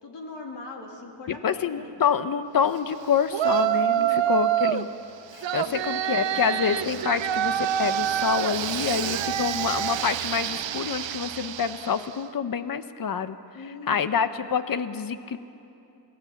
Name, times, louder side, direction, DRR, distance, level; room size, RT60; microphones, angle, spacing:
voice 1, 0.0-1.9 4.0-4.3 5.6-5.8 13.5-14.0, left 3 dB, 70° left, 1 dB, 3.0 m, -41 dB
voice 2, 1.3-4.9 5.3-13.4 13.6-15.4, left 7 dB, 50° left, 11 dB, 1.0 m, -27 dB
Yell, 3.3-4.9 5.4-12.1, right 11 dB, 90° right, 0.8 m, -27 dB
sound 1, 6.3-11.3, right 7 dB, 40° right, 1.6 m, -47 dB
28.0 x 17.5 x 7.2 m, 2.7 s
wide cardioid pair, 115°, 44 cm